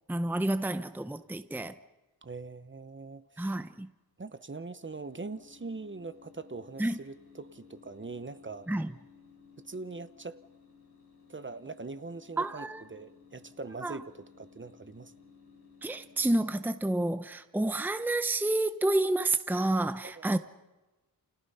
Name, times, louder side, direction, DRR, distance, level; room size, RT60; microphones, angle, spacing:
voice 1, 0.1-1.8 3.4-3.9 6.8-7.0 8.7-8.9 12.4-12.8 13.8-14.0 15.8-20.4, right 2 dB, 5° right, 0.8 m, -29 dB
voice 2, 2.2-3.6 4.2-8.7 9.6-10.4 11.3-15.1 20.0-20.4, right 3 dB, 30° right, 1.0 m, -42 dB
sound 1, 4.9-17.2, left 5 dB, 90° left, 7.7 m, -58 dB
29.5 x 29.5 x 5.7 m
wide cardioid pair, 125°, 38 cm